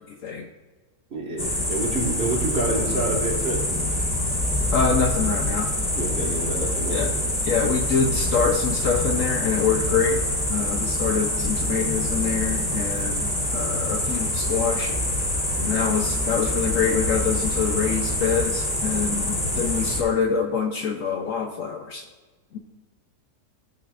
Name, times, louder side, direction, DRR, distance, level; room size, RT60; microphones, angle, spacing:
voice 1, 0.1-0.5 4.7-5.7 6.9-7.1 7.4-10.2 10.5-15.1 15.6-22.1 22.5-22.6, left 6 dB, 65° left, 4 dB, 0.9 m, -25 dB
voice 2, 1.1-3.6 6.0-7.1, right 1 dB, 40° right, -2 dB, 1.8 m, -27 dB
sound 1, 1.4-20.0, left 1 dB, 35° left, 2.0 m, -25 dB
15.0 x 5.6 x 2.4 m, 1.3 s
omnidirectional pair, 1.7 m